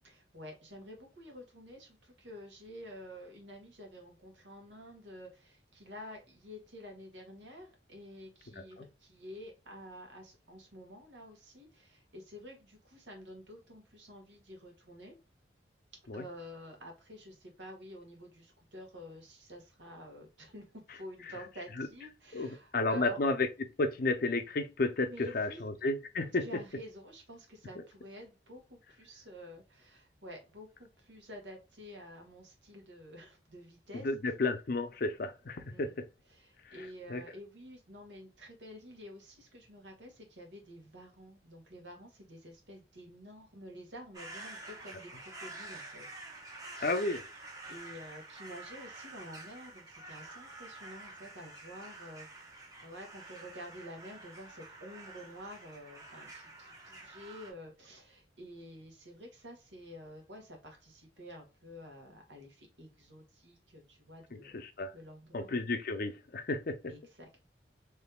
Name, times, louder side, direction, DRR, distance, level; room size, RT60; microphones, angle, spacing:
voice 1, 0.0-15.2 16.1-23.2 25.1-25.7 26.4-34.1 35.7-35.9 36.3-46.1 46.4-46.8 47.7-52.4 52.8-64.6 64.9-65.5 66.9-67.4, equal, 80° right, 1.6 m, -50 dB
voice 2, 8.6-8.9 16.1-16.3 21.8-21.9 22.3-23.5 23.8-26.6 33.9-35.9 36.6-37.2 46.8-47.2 64.4-64.9 65.3-66.9, left 2 dB, 55° left, 0.6 m, -32 dB
sound 1, 44.1-57.5, right 2 dB, 20° right, 1.0 m, -48 dB
3.5 x 3.2 x 2.2 m
head